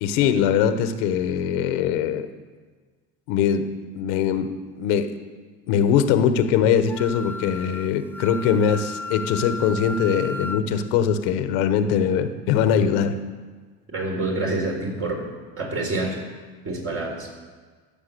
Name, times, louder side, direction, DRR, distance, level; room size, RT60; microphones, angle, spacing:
voice 1, 0.0-2.3 3.3-4.5 4.8-5.1 5.7-13.2, left 8 dB, 85° left, 9 dB, 1.0 m, -22 dB
Wind instrument woodwind instrument, 6.9-10.6, left 2 dB, 5° left, 0.6 m, -34 dB
voice 2, 13.9-15.3 15.6-16.2 16.6-17.3, right 2 dB, 40° right, 0 dB, 4.1 m, -27 dB
15.0 x 7.0 x 6.7 m, 1.5 s
supercardioid pair, 100°, 33 cm